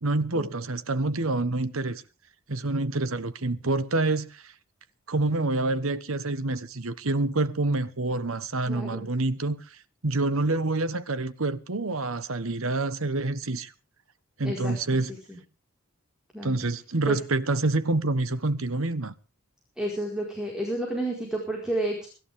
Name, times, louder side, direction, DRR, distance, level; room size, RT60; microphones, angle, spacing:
voice 1, 0.0-2.0 2.5-4.5 5.1-13.7 14.4-15.1 16.4-19.1, right 2 dB, 75° right, 1.2 m, -27 dB
voice 2, 8.7-9.1 14.4-14.7 15.3-15.4 16.3-16.6 17.1-17.2 19.8-22.1, right 1 dB, 5° right, 4.7 m, -30 dB
24.5 x 12.0 x 3.6 m
head